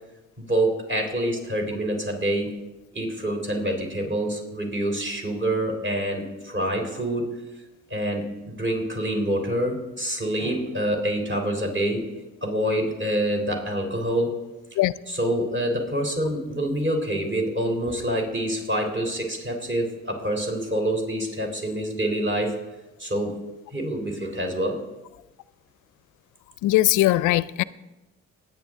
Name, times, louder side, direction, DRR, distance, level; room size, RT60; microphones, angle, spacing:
voice 1, 0.4-2.5 2.9-7.3 7.9-12.0 12.4-14.4 15.1-22.6 23.0-23.4 23.7-24.8, right 1 dB, 40° right, 3.3 m, -26 dB
voice 2, 26.6-27.6, left 16 dB, 90° left, 0.5 m, -20 dB
20.5 x 9.4 x 3.6 m
cardioid pair, 90°, 30 cm